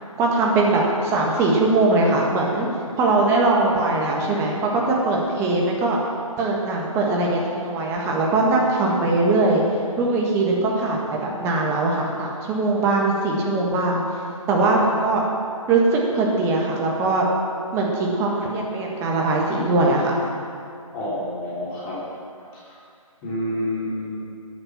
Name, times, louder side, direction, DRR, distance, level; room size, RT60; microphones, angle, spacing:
voice 1, 0.2-2.7 3.0-6.0 6.4-9.6 10.0-11.0 11.4-14.0 14.5-15.2 15.7-17.2 17.7-20.1, right 2 dB, 15° right, -2 dB, 1.6 m, -21 dB
voice 2, 20.9-22.0 22.6-22.8 23.2-24.2, left 1 dB, 20° left, -9 dB, 3.3 m, -28 dB
10.0 x 9.3 x 7.2 m, 2.4 s
figure-of-eight pair, 150°, 18 cm